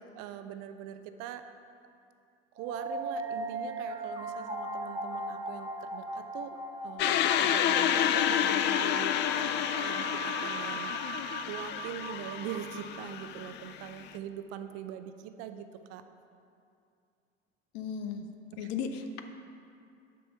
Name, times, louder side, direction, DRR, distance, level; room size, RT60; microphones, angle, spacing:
voice 1, 0.1-1.5 2.5-6.6 6.8-16.0 18.5-18.7, right 9 dB, 50° right, 9 dB, 0.6 m, -42 dB
sound 1, 2.6-13.5, right 2 dB, 15° right, 1.2 m, -39 dB
sound 2, 7.0-14.1, left 10 dB, 35° left, 0.4 m, -29 dB
voice 2, 17.7-18.3 18.6-19.2, left 6 dB, 55° left, 7 dB, 0.8 m, -35 dB
7.6 x 5.5 x 5.6 m, 2.5 s
figure-of-eight pair, 70°, 32 cm